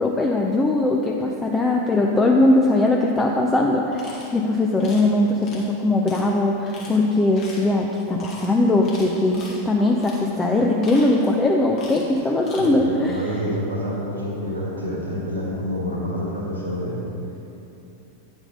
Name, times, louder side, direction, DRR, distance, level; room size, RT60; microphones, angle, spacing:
voice 1, 0.0-13.2, left 2 dB, 15° left, 0 dB, 0.6 m, -20 dB
sound 1, 3.9-4.3 4.8-5.1 5.4-5.7 6.1-6.2 6.7-7.0 7.3-7.7 8.2-8.5 8.8-9.6 10.0-10.2 10.7-11.4 11.7-12.1 12.4-12.7, left 3 dB, 35° left, 1.9 m, -40 dB
voice 2, 12.6-17.0, equal, 75° right, -4 dB, 1.7 m, -28 dB
9.3 x 6.0 x 5.3 m, 2.8 s
figure-of-eight pair, 90°, 0 cm